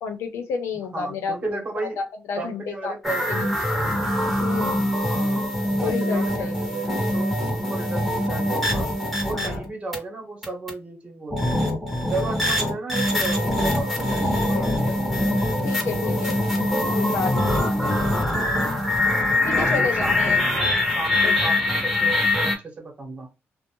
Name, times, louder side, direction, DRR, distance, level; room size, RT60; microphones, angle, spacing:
voice 1, 0.0-1.6 2.0-2.9 3.3-3.4 4.4-4.9 5.6-6.7 9.3-9.6 14.2-14.7 15.6-18.3 19.4-20.4 21.2-21.3, left 5 dB, 90° left, 6 dB, 0.7 m, -31 dB
voice 2, 0.9-2.0 2.4-3.7 5.2-5.5 5.8-8.9 9.2-11.6 12.1-15.0 15.8-16.2 16.5-18.2 19.4-23.3, right 3 dB, 30° right, 2 dB, 1.0 m, -34 dB
sound 1, 3.0-10.0 10.4-10.7 11.3-22.6, left 1 dB, ahead, 0.8 m, -23 dB
2.5 x 2.1 x 2.9 m, 0.27 s
cardioid pair, 125°, 5 cm